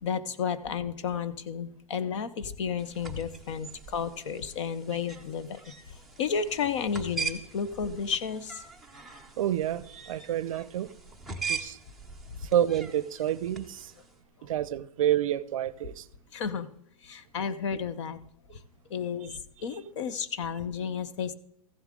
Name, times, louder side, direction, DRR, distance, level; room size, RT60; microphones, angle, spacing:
voice 1, 0.0-5.6 6.2-8.6 16.3-16.7 17.0-18.2 18.9-19.3 19.6-21.3, left 6 dB, 55° left, 0.8 m, -32 dB
sound 1, 2.8-14.1, right 5 dB, ahead, 0.6 m, -41 dB
voice 2, 9.4-10.9 11.4-11.8 12.4-13.9 14.4-16.1 18.5-18.6 19.3-19.4, right 11 dB, 60° right, 0.5 m, -29 dB
14.5 x 7.3 x 3.7 m
hypercardioid pair, 160°, 19 cm